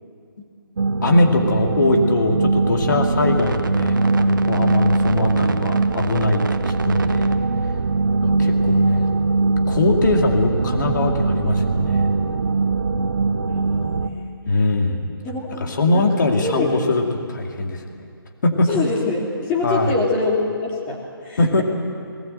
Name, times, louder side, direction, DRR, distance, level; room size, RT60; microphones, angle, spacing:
sound 1, 0.8-14.1, right 3 dB, 55° right, 1.0 m, -21 dB
voice 1, 1.0-7.3 8.2-9.1 9.7-12.1 14.5-15.1 15.6-18.1 18.4-18.7 19.6-19.9 21.4-21.6, left 2 dB, 55° left, 3 dB, 2.4 m, -21 dB
voice 2, 5.2-5.5 8.1-8.4 13.4-14.3 15.2-16.8 18.7-21.6, left 3 dB, 15° left, -2 dB, 2.8 m, -26 dB
20.0 x 19.0 x 7.9 m, 2.5 s
figure-of-eight pair, 145°, 12 cm